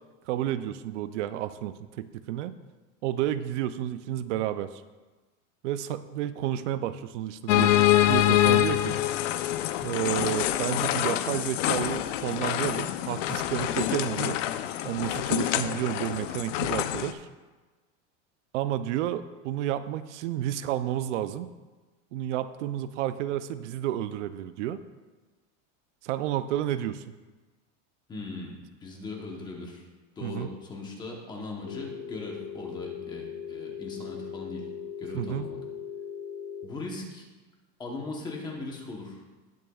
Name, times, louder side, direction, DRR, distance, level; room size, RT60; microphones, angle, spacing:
voice 1, 0.3-2.6 3.0-4.8 5.6-9.0 9.8-14.4 14.8-17.3 18.5-21.5 22.1-24.8 26.0-27.0 30.2-30.5 35.1-35.5, right 12 dB, 75° right, 12 dB, 0.5 m, -31 dB
sound 1, 7.5-17.1, left 12 dB, 85° left, 0.7 m, -26 dB
voice 2, 28.1-29.8 30.2-34.7 35.0-35.6 36.6-37.2 37.8-39.2, left 3 dB, 10° left, -1 dB, 0.9 m, -39 dB
Telephone, 31.6-36.6, left 8 dB, 35° left, 0.5 m, -39 dB
19.0 x 6.5 x 2.3 m, 1.2 s
supercardioid pair, 180°, 37 cm